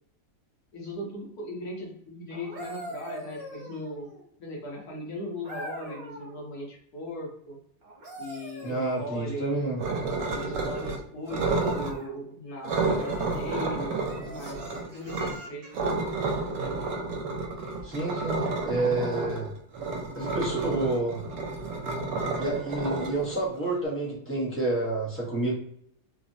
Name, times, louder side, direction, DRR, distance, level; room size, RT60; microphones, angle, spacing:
voice 1, 0.7-4.1 4.4-7.6 8.2-9.6 10.3-14.6 14.9-15.9, left 1 dB, 65° left, -2 dB, 1.3 m, -38 dB
sound 1, 2.3-4.3 5.4-6.4 7.8-9.4 11.5-12.1 12.9-13.4 14.0-15.9 17.7-17.9, right 1 dB, 50° right, 0.6 m, -43 dB
voice 2, 8.6-9.8 17.8-19.5 20.1-21.2 22.4-25.5, right 2 dB, 20° left, -6 dB, 0.4 m, -29 dB
sound 2, 9.8-11.0 11.3-11.9 12.6-15.3 15.7-23.8, right 3 dB, 85° right, 1.2 m, -30 dB
3.3 x 2.0 x 2.5 m, 0.68 s
omnidirectional pair, 1.8 m